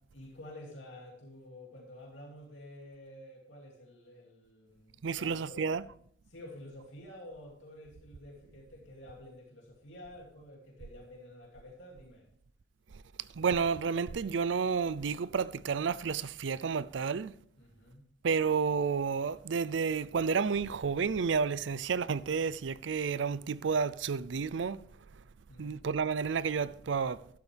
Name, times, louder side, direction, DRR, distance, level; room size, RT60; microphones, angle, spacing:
voice 1, 0.1-5.7 6.3-12.3 17.6-18.0 25.5-25.9, left 1 dB, 75° left, 2.6 m, -50 dB
voice 2, 5.0-5.9 13.4-17.3 18.2-24.8 25.6-27.2, right 5 dB, 70° right, 0.5 m, -31 dB
12.5 x 12.0 x 3.4 m
head